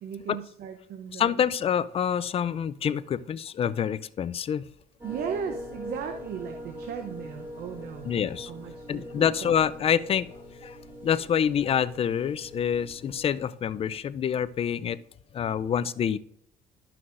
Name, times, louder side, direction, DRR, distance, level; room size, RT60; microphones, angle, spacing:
voice 1, 0.0-1.4 5.0-9.6, right 7 dB, 70° right, 5 dB, 0.8 m, -37 dB
voice 2, 1.1-4.6 8.0-8.5 8.9-10.3 10.6-10.8 11.0-15.0 15.3-16.2, left 8 dB, 35° left, 16 dB, 0.4 m, -27 dB
sound 1, 5.0-13.3, equal, 15° right, 2.4 m, -42 dB
12.5 x 5.9 x 2.5 m, 0.67 s
cardioid pair, 110°, 17 cm